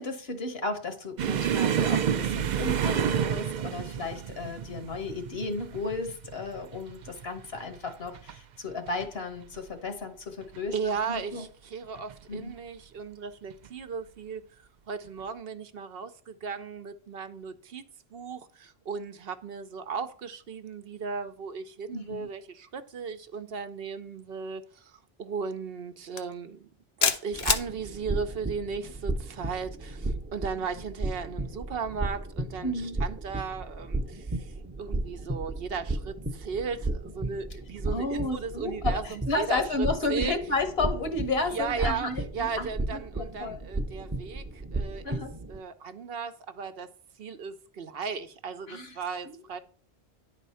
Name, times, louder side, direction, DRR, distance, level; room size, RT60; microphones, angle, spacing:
voice 1, 0.0-10.7 11.1-11.5 12.3-12.5 21.9-22.3 32.6-33.0 37.9-43.6 45.0-45.3 48.7-49.0 49.2-49.3, left 2 dB, 70° left, 1.6 m, -33 dB
sound 1, 1.2-8.4 8.7-9.1 9.4-9.6 10.4-11.0 12.0-12.1 13.5-13.7, right 9 dB, 55° right, 0.6 m, -30 dB
voice 2, 10.7-14.4 14.9-26.7 27.0-40.3 41.5-45.2 45.5-46.9 47.2-49.6, right 5 dB, 70° right, 0.9 m, -36 dB
sound 2, 26.2-26.3 27.0-27.7, left 6 dB, 50° left, 0.8 m, -25 dB
sound 3, 27.3-45.6, right 2 dB, 15° right, 0.6 m, -34 dB
10.0 x 4.1 x 5.5 m
omnidirectional pair, 1.1 m